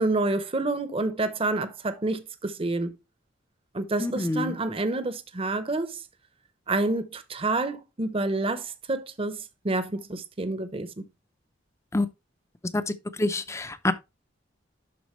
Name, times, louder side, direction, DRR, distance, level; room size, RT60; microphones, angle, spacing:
voice 1, 0.0-2.9 3.7-6.0 6.7-11.1, right 2 dB, 30° right, 0.7 m, -28 dB
voice 2, 4.0-4.5 11.9-12.1 12.7-12.8 13.2-13.9, left 2 dB, 15° left, 0.5 m, -26 dB
11.5 x 4.0 x 3.0 m
head